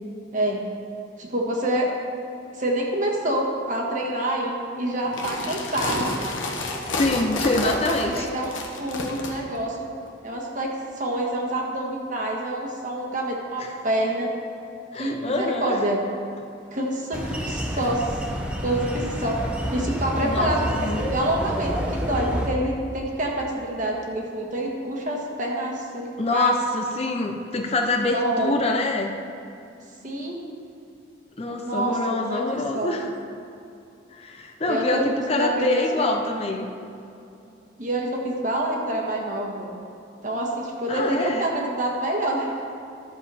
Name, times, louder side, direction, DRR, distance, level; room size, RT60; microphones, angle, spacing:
voice 1, 1.2-1.9 2.5-6.1 7.6-8.5 8.8-9.9 10.2-14.3 14.9-16.0 16.7-18.2 18.6-19.4 19.7-26.6 28.1-28.5 30.0-30.4 31.4-33.0 34.7-36.1 37.8-39.7 40.2-42.5, right 1 dB, 40° right, -1 dB, 1.5 m, -27 dB
sound 1, 5.0-9.3, left 3 dB, 90° left, 1.3 m, -30 dB
voice 2, 6.9-8.3 13.6-13.7 14.9-15.8 17.5-17.6 20.2-21.0 26.2-29.1 31.4-33.1 34.1-36.7 40.9-41.5, left 2 dB, 30° left, 3 dB, 0.6 m, -25 dB
sound 2, 17.1-22.5, equal, 5° right, 0.8 m, -29 dB
12.5 x 7.0 x 4.2 m, 2.6 s
head